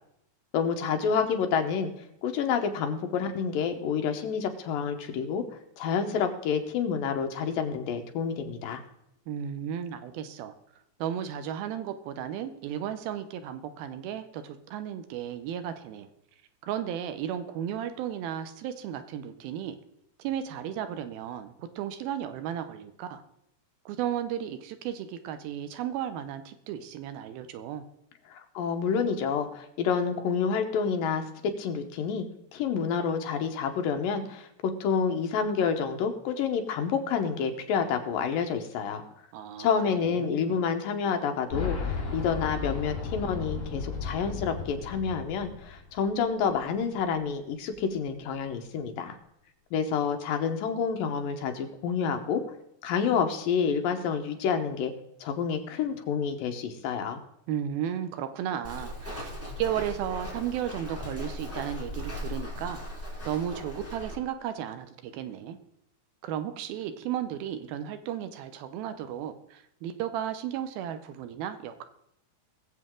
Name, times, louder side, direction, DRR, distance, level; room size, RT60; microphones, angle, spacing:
voice 1, 0.5-1.9 2.2-5.4 5.8-8.8 28.3-31.3 31.6-32.2 32.5-39.0 39.6-49.2 49.7-52.4 52.8-54.9 55.2-57.2, left 6 dB, 70° left, 4 dB, 2.4 m, -28 dB
voice 2, 9.3-10.5 11.0-16.1 16.6-19.8 20.2-23.2 23.9-27.8 39.3-40.6 57.5-65.6 66.2-71.8, right 10 dB, 75° right, 10 dB, 2.4 m, -34 dB
Boom, 41.5-46.3 46.5-46.6 47.7-47.8, left 5 dB, 40° left, 3.7 m, -34 dB
Walk footsteps, 58.6-64.1, left 1 dB, 5° right, 2.3 m, -38 dB
21.5 x 7.5 x 3.7 m, 0.80 s
omnidirectional pair, 4.7 m